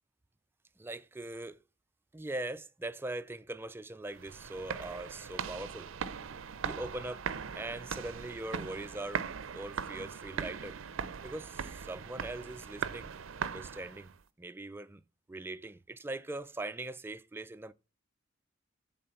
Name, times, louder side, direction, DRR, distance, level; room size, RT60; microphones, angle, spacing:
voice 1, 0.8-1.6 2.1-5.9 6.6-7.3 7.6-9.3 9.5-10.8 11.2-14.1 14.4-15.0 15.3-17.7, right 2 dB, 10° right, 0.3 m, -41 dB
sound 1, 4.1-14.2, right 6 dB, 80° right, 0.5 m, -40 dB
7.9 x 3.7 x 5.6 m
head